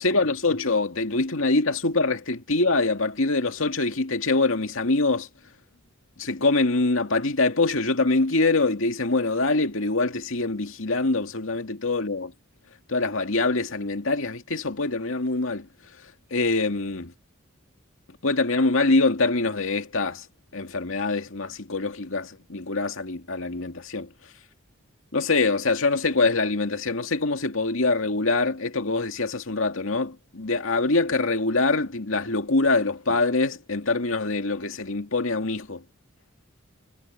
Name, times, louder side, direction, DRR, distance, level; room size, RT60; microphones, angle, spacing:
voice 1, 0.0-5.3 6.2-12.3 12.9-15.7 16.3-17.1 18.2-20.3 20.5-24.1 25.1-35.8, left 3 dB, 80° left, 2.2 m, -24 dB
head